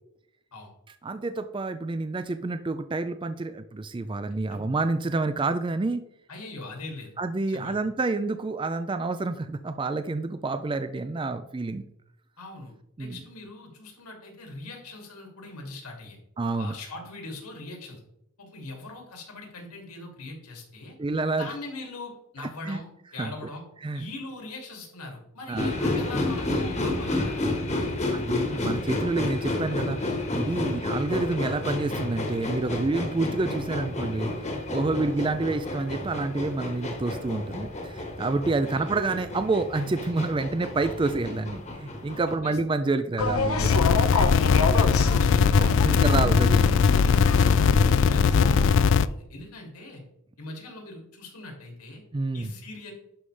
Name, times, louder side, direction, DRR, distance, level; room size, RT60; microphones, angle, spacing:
voice 1, 1.0-6.0 7.2-11.9 13.0-13.2 16.4-16.7 21.0-21.5 22.7-22.8 23.2-23.3 23.8-24.0 25.5-25.8 28.1-43.7 45.8-47.0 52.1-52.5, right 3 dB, 20° right, 9 dB, 0.4 m, -28 dB
voice 2, 6.3-7.1 7.5-7.8 12.4-16.2 16.6-18.0 18.4-21.0 21.3-23.7 23.9-27.5 30.7-30.8 34.9-35.1 38.4-38.9 42.4-42.6 44.1-46.1 46.9-47.5 47.8-50.0 50.4-52.0 52.3-52.9, left 2 dB, 90° left, 1 dB, 2.6 m, -41 dB
sound 1, 25.6-42.4, left 2 dB, 30° left, 1.4 m, -31 dB
sound 2, 43.2-48.7, left 3 dB, 75° left, 1.0 m, -28 dB
sound 3, 43.6-49.1, left 6 dB, 55° left, 0.3 m, -20 dB
11.5 x 5.4 x 3.3 m, 0.76 s
head